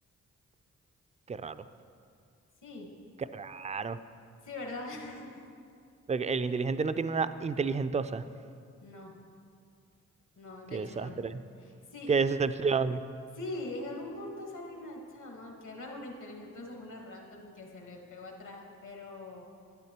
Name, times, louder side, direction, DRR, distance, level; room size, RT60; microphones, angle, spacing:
voice 1, 3.3-4.0 6.1-8.2 10.7-11.4 12.1-13.0, right 5 dB, 25° right, 13 dB, 0.4 m, -30 dB
voice 2, 4.4-5.4 8.8-9.1 10.4-11.2 11.6-12.3 13.3-19.4, left 2 dB, 70° left, 1 dB, 1.5 m, -42 dB
10.5 x 9.2 x 2.9 m, 2.3 s
supercardioid pair, 45°, 31 cm